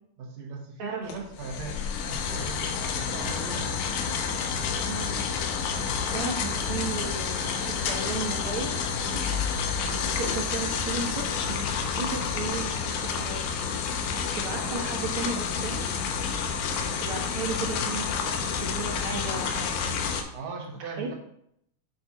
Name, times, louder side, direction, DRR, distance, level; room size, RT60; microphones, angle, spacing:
voice 1, 0.2-3.9 14.4-14.8 20.3-21.1, right 4 dB, 65° right, 0 dB, 2.1 m, -39 dB
sound 1, 1.1-20.2, left 6 dB, 85° left, 2.3 m, -29 dB
voice 2, 4.8-5.4 5.8-9.2 9.8-13.6 14.3-15.9 16.7-20.1 20.8-21.1, right 4 dB, 80° right, -1 dB, 1.2 m, -35 dB
8.3 x 4.3 x 3.0 m, 0.72 s
omnidirectional pair, 3.8 m